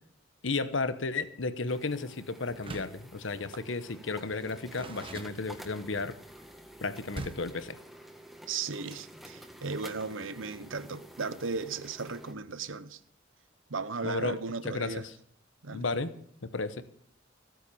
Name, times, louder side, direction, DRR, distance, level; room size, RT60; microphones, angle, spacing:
voice 1, 0.4-6.2 6.8-7.8 14.0-15.1 15.7-16.1 16.4-16.8, left 3 dB, 70° left, 1.1 m, -33 dB
sound 1, 1.7-12.3, equal, ahead, 1.7 m, -50 dB
Door, 2.5-3.1 4.2-5.9 7.1-7.6, right 2 dB, 30° right, 1.2 m, -43 dB
voice 2, 8.5-13.0 13.7-15.1 15.6-15.8, right 4 dB, 90° right, 0.9 m, -36 dB
16.0 x 9.1 x 7.0 m
head